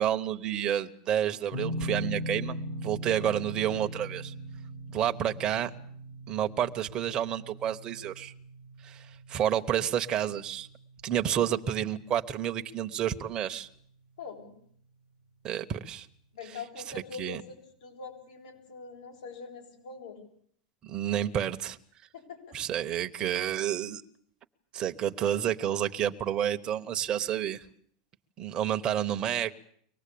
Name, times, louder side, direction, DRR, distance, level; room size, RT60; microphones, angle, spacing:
voice 1, 0.0-4.3 4.9-5.7 6.3-8.3 8.8-10.7 11.0-13.7 15.4-16.1 16.9-17.4 20.8-21.8 22.5-24.0 24.7-27.6 28.4-29.5, right 10 dB, 20° right, 7 dB, 0.9 m, -30 dB
sound 1, 1.5-14.4, equal, 75° left, 2.8 m, -41 dB
voice 2, 14.2-14.5 16.3-20.2 22.1-22.6, left 5 dB, 90° left, 2 dB, 8.0 m, -43 dB
24.0 x 19.5 x 8.5 m, 0.63 s
supercardioid pair, 175°, 4 cm